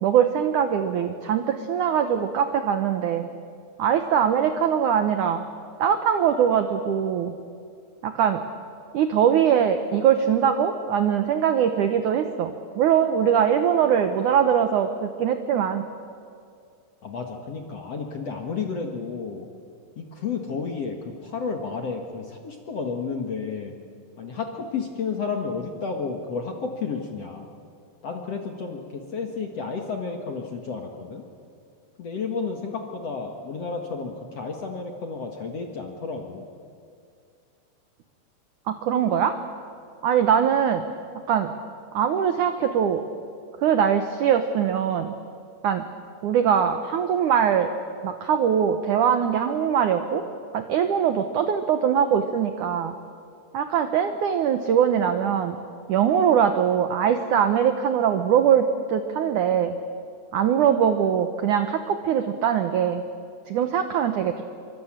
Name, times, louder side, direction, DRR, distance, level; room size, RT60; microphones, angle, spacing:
voice 1, 0.0-3.3 3.8-5.4 5.8-7.3 8.0-8.4 8.9-15.8 38.7-39.3 40.0-40.8 41.3-41.5 41.9-43.0 43.6-45.1 45.6-45.8 46.2-47.7 48.0-50.2 50.5-53.0 53.5-55.6 55.9-59.8 60.3-63.0 63.5-64.4, right 8 dB, 80° right, 8 dB, 1.8 m, -22 dB
voice 2, 17.0-19.5 20.0-23.7 24.2-27.5 28.0-31.2 32.0-36.5, left 5 dB, 50° left, 3 dB, 2.0 m, -31 dB
26.0 x 24.5 x 8.9 m, 2.4 s
omnidirectional pair, 5.1 m